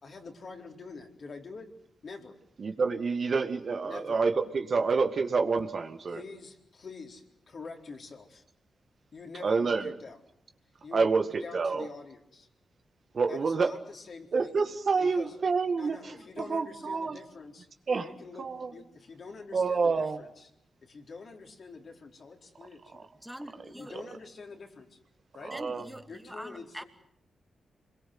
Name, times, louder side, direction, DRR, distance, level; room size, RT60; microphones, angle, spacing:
voice 1, 0.0-1.7 2.0-2.4 3.8-4.2 6.1-8.4 9.1-10.2 10.8-12.5 13.3-14.6 15.0-15.3 15.8-17.7 17.9-20.5 20.8-23.1 23.8-25.0 25.3-25.5 26.1-26.8, left 4 dB, 60° left, 2 dB, 4.2 m, -46 dB
voice 2, 2.6-6.2 9.4-10.0 10.9-11.2 11.5-11.9 13.1-13.7 14.3-16.0 16.4-17.2 17.9-18.1 18.4-18.7 19.5-20.2 25.4-25.8, right 4 dB, 60° right, 6 dB, 2.1 m, -28 dB
voice 3, 23.2-23.9 25.5-26.8, equal, 5° right, 7 dB, 2.7 m, -43 dB
26.5 x 22.0 x 7.9 m, 0.76 s
supercardioid pair, 40°, 0 cm